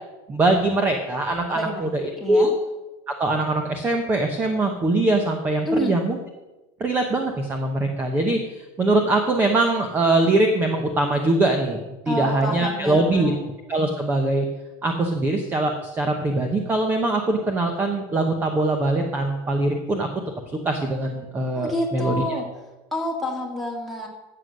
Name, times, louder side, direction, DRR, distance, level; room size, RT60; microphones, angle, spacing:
voice 1, 0.3-1.9 2.3-2.5 3.1-6.2 6.8-11.8 12.1-13.3 13.7-14.5 14.8-20.1 20.6-22.3, right 2 dB, 15° right, 4 dB, 0.9 m, -22 dB
voice 2, 1.5-1.9 2.2-2.5 5.7-5.9 12.1-13.4 21.5-22.5 22.9-24.1, left 1 dB, ahead, -3 dB, 2.1 m, -28 dB
13.5 x 7.7 x 6.4 m, 1.1 s
cardioid pair, 175°, 12 cm